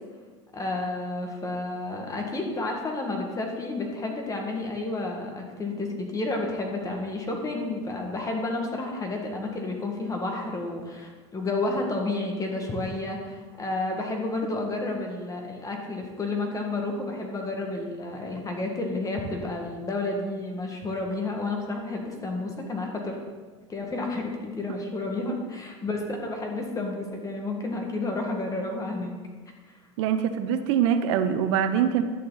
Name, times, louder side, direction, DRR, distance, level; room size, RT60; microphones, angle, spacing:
voice 1, 0.5-23.2 23.7-29.2, left 2 dB, 20° left, 2 dB, 1.8 m, -31 dB
voice 2, 30.0-32.0, right 8 dB, 70° right, 9 dB, 0.8 m, -23 dB
11.0 x 6.7 x 4.0 m, 1.4 s
supercardioid pair, 105°, 16 cm